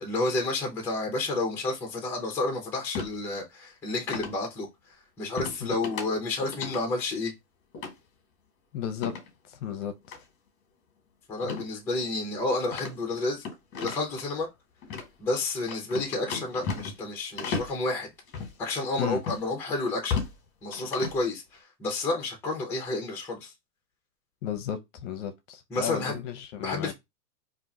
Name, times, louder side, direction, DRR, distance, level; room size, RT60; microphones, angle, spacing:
voice 1, 0.0-7.3 11.3-13.4 13.7-14.5 15.2-18.1 18.6-20.2 20.6-23.5 25.7-26.2 26.6-26.9, left 2 dB, 5° left, 0.5 m, -30 dB
sound 1, 2.9-3.1 4.1-4.4 5.4-5.6 5.8-6.1 6.4-6.8 7.7-7.9 9.0-9.3 10.0-10.2 11.4-11.7 12.0-12.1 12.7-14.2 14.8-15.1 15.7-17.1 17.4-17.8 18.3-18.5 19.3-19.4 19.9-20.4 20.7-21.2, left 5 dB, 25° left, 1.1 m, -34 dB
voice 2, 8.7-9.1 9.5-10.2 19.0-19.2 24.4-26.9, left 9 dB, 50° left, 0.6 m, -34 dB
2.6 x 2.3 x 3.9 m
hypercardioid pair, 125°, 50 cm